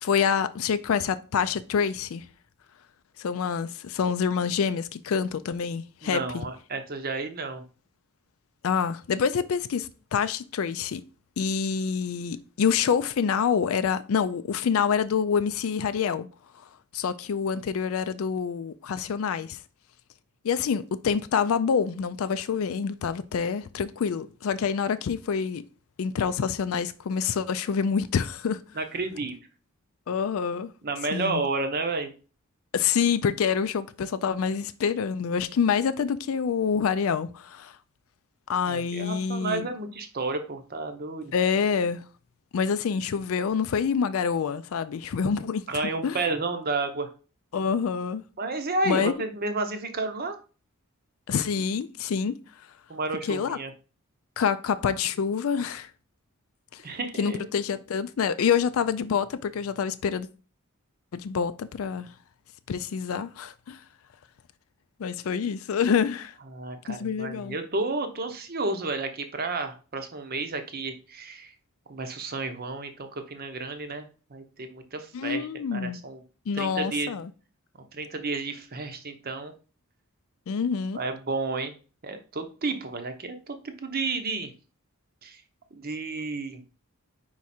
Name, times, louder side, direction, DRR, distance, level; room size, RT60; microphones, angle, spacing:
voice 1, 0.0-2.3 3.2-6.2 8.6-11.0 11.4-16.3 16.9-19.6 20.4-25.6 26.0-28.6 30.1-30.7 31.1-31.4 32.7-37.8 38.5-39.7 41.3-42.0 42.5-46.2 47.5-48.2 48.9-49.1 51.3-52.4 53.2-53.6 54.4-55.9 56.7-56.8 57.2-60.3 61.1-62.1 62.7-63.8 65.0-66.3 66.9-67.6 75.1-76.0 76.5-77.3 80.5-81.0, left 6 dB, 65° left, 0.4 m, -27 dB
voice 2, 6.0-7.6 28.7-29.3 30.8-32.1 38.6-41.3 45.7-47.1 48.4-50.4 52.9-53.7 56.8-57.5 66.5-71.5 71.9-76.2 76.5-77.1 77.9-79.5 80.9-81.7 82.0-84.5 85.2-85.4 85.7-86.6, right 3 dB, 45° right, 0.8 m, -31 dB
4.8 x 4.7 x 4.2 m
head